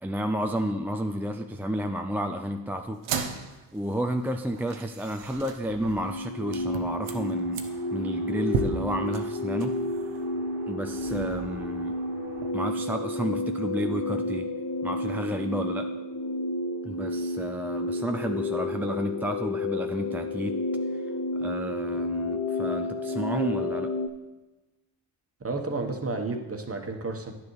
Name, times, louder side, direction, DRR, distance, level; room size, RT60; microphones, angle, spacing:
voice 1, 0.0-3.0 3.7-9.8 10.7-11.9 12.5-14.5 14.8-15.9 16.8-20.6 20.9-21.0 21.4-23.9, equal, 5° right, 5 dB, 0.4 m, -31 dB
sound 1, 2.9-12.5, right 5 dB, 90° right, 0.8 m, -38 dB
sound 2, 5.9-24.1, left 1 dB, 45° left, 0.7 m, -31 dB
voice 2, 25.4-27.3, right 3 dB, 30° right, 3 dB, 1.2 m, -31 dB
10.0 x 7.0 x 3.3 m, 1.1 s
supercardioid pair, 45°, 47 cm